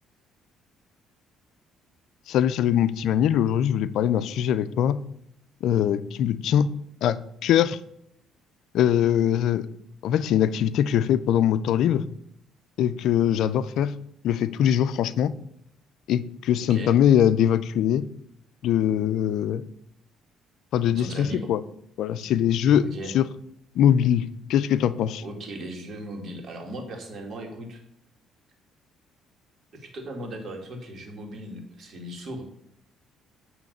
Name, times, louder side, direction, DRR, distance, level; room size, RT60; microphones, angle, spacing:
voice 1, 2.3-5.0 5.6-6.7 7.0-7.8 8.7-9.7 10.0-12.0 12.8-13.9 14.2-15.3 16.1-18.1 18.6-19.6 20.7-21.6 22.0-22.9 23.1-23.2 23.8-24.2 24.5-25.2, left 10 dB, 70° left, 14 dB, 0.4 m, -22 dB
voice 2, 20.9-21.5 22.8-23.1 25.2-27.8 29.7-32.4, right 1 dB, 45° right, 3 dB, 1.9 m, -37 dB
9.1 x 3.1 x 6.5 m, 0.72 s
cardioid pair, 95°, 0 cm